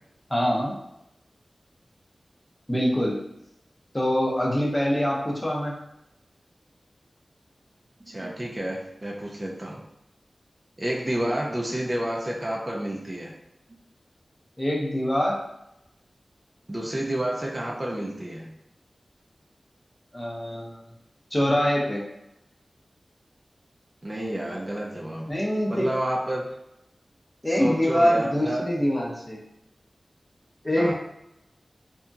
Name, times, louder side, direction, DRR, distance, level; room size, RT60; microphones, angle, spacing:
voice 1, 0.3-0.7 2.7-3.2 3.9-5.7 11.2-11.3 14.6-15.4 20.1-20.8 21.3-22.0 25.3-25.9 27.4-29.4 30.6-30.9, equal, 20° left, -3 dB, 0.7 m, -24 dB
voice 2, 8.0-9.8 10.8-13.3 16.7-18.5 24.0-25.3 25.7-26.4 27.5-28.6 30.8-30.9, right 1 dB, 30° right, -2 dB, 0.5 m, -29 dB
2.8 x 2.6 x 2.3 m, 0.84 s
wide cardioid pair, 60°, 0 cm